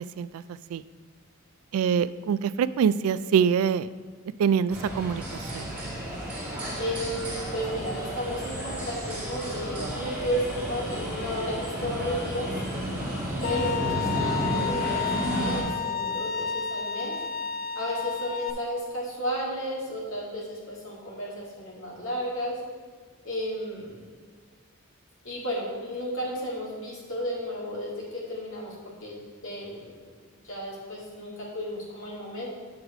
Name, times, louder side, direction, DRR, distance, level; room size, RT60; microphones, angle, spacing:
voice 1, 1.7-3.9 4.4-5.7, right 7 dB, 85° right, 17 dB, 0.3 m, -25 dB
sound 1, 4.7-15.6, right 1 dB, 5° right, 2.4 m, -32 dB
voice 2, 6.8-12.5 13.4-17.2 17.8-22.6 23.2-24.1 25.2-28.7 29.0-32.5, equal, 70° left, -4 dB, 2.2 m, -33 dB
Bowed string instrument, 13.4-18.5, left 7 dB, 40° left, 0.4 m, -31 dB
8.0 x 4.8 x 4.9 m, 1.5 s
head